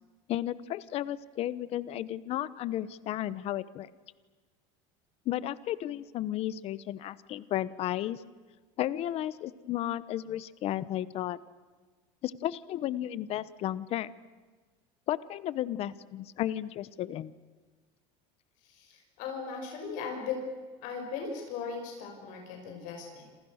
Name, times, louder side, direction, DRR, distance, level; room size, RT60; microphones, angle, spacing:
voice 1, 0.3-3.9 5.2-8.2 8.8-11.4 12.2-14.1 15.1-17.3, left 13 dB, 45° left, 17 dB, 1.0 m, -33 dB
voice 2, 18.7-20.4 20.8-23.2, left 5 dB, 60° left, 2 dB, 6.2 m, -38 dB
28.5 x 27.0 x 6.6 m, 1.4 s
cardioid pair, 155°, 15 cm